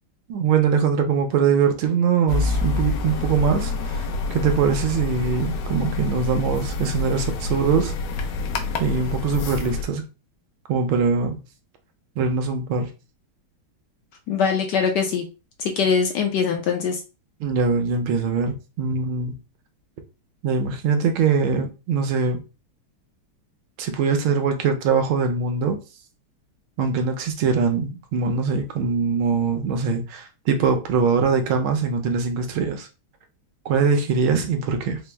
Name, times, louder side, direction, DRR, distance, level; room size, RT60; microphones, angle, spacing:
voice 1, 0.3-7.9 8.8-10.0 10.7-11.4 12.2-12.9 17.4-19.4 20.4-22.4 23.8-25.8 26.8-32.9 33.6-35.0, right 5 dB, 80° right, 1.5 m, -22 dB
sound 1, 2.3-9.8, left 3 dB, 85° left, 1.5 m, -27 dB
voice 2, 14.3-15.2 15.6-17.0, left 6 dB, 70° left, 1.1 m, -22 dB
4.3 x 2.0 x 3.3 m
omnidirectional pair, 2.2 m